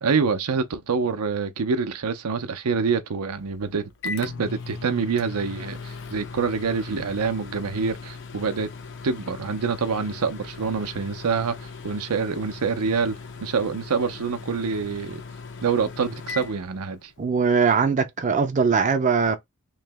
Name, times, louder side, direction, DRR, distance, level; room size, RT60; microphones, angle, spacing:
voice 1, 0.0-8.7 9.0-15.2 15.6-17.1, right 5 dB, 80° right, 0.6 m, -26 dB
Microwave oven, 3.4-17.4, left 4 dB, 55° left, 0.6 m, -39 dB
voice 2, 17.2-19.4, right 5 dB, 35° right, 0.4 m, -21 dB
3.1 x 2.8 x 3.4 m
head